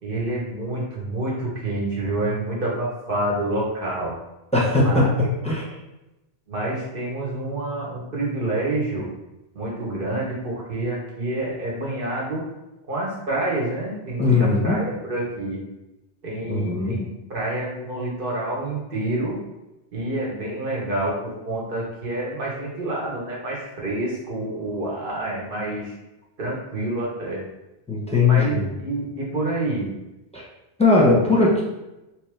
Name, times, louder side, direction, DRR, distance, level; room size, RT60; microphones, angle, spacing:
voice 1, 0.0-4.1 4.8-5.3 6.5-9.1 9.5-12.4 12.9-15.6 16.2-19.4 19.9-25.9 26.4-27.4 28.1-29.9, right 2 dB, 55° right, -4 dB, 1.3 m, -28 dB
voice 2, 4.5-5.7 14.2-14.8 16.5-17.1 27.9-28.7 30.3-30.5 30.8-31.6, left 3 dB, 5° left, -5 dB, 0.9 m, -19 dB
4.3 x 3.1 x 3.3 m, 0.96 s
omnidirectional pair, 1.1 m